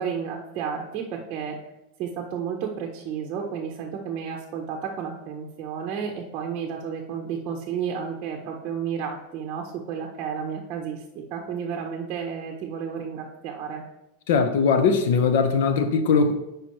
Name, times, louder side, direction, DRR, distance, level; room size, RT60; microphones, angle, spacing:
voice 1, 0.0-1.6 2.0-13.8, right 7 dB, 35° right, 1 dB, 0.7 m, -32 dB
voice 2, 14.3-16.3, left 5 dB, 70° left, 9 dB, 0.7 m, -20 dB
8.8 x 5.0 x 3.0 m, 0.91 s
supercardioid pair, 155°, 0 cm